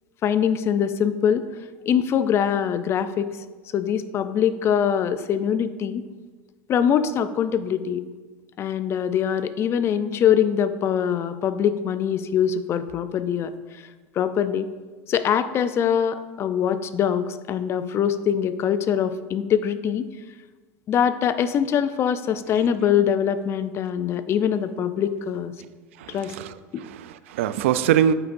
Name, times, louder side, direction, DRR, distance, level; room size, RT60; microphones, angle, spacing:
voice 1, 0.2-1.5 1.9-3.3 3.7-6.0 6.7-8.0 8.6-13.5 14.2-14.7 15.1-20.1 20.9-25.5 26.1-26.3 26.7-26.8, left 8 dB, 40° left, 0.5 m, -23 dB
voice 2, 26.0-28.1, right 10 dB, 85° right, 0.4 m, -24 dB
8.8 x 7.8 x 2.6 m
supercardioid pair, 105°, 7 cm